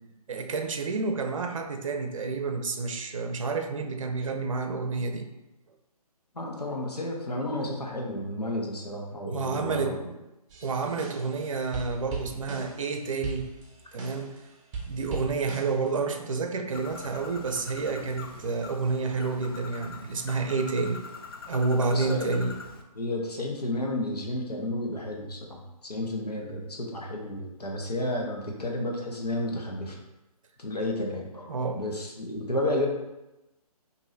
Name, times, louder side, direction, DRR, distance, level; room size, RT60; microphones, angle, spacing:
voice 1, 0.3-5.3 9.3-10.0 10.6-13.5 13.9-14.4 14.9-21.0 21.5-22.5 31.5-31.8, right 4 dB, 55° right, 5 dB, 0.5 m, -29 dB
voice 2, 6.3-10.1 21.9-22.4 22.9-30.0 30.6-32.9, left 1 dB, 80° left, 0 dB, 1.0 m, -32 dB
sound 1, 10.5-11.4 11.7-12.9 13.2-14.4 14.7-15.9, right 4 dB, 15° right, 0.6 m, -39 dB
Bird, 16.7-22.8, left 4 dB, 40° left, 0.4 m, -43 dB
4.7 x 2.6 x 2.6 m, 0.98 s
figure-of-eight pair, 140°, 20 cm